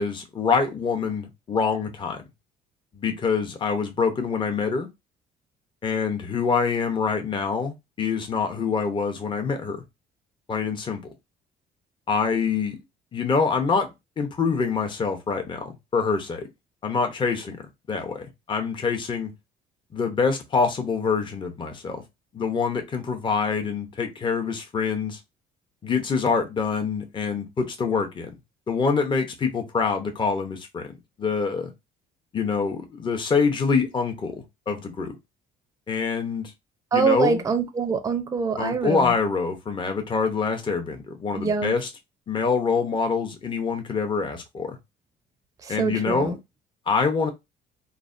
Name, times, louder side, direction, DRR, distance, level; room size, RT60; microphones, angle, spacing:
voice 1, 0.0-2.2 3.0-4.9 5.8-9.8 10.5-11.0 12.1-12.8 13.1-13.9 14.2-16.5 16.8-17.5 17.9-19.3 19.9-22.0 22.3-25.2 25.8-28.3 28.7-30.9 31.2-31.7 32.3-35.2 35.9-36.5 36.9-37.4 38.6-41.9 42.3-44.8 45.7-46.3 46.9-47.3, left 5 dB, 30° left, 0.7 m, -25 dB
voice 2, 36.9-39.1 41.4-41.7 45.6-46.3, right 5 dB, 20° right, 0.5 m, -24 dB
3.2 x 2.1 x 2.5 m
cardioid pair, 110°, 17 cm